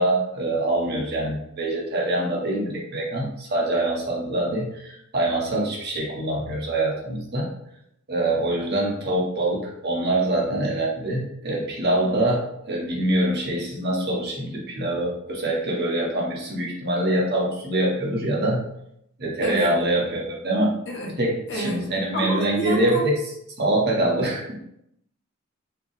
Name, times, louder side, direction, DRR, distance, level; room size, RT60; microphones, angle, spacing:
voice 1, 0.0-7.5 8.1-18.6 19.2-20.7 21.2-23.2 23.6-24.6, right 1 dB, 55° right, -3 dB, 1.2 m, -24 dB
voice 2, 19.4-19.7 20.9-21.1 21.5-23.1, equal, 60° left, -3 dB, 1.0 m, -29 dB
4.9 x 2.3 x 3.3 m, 0.76 s
head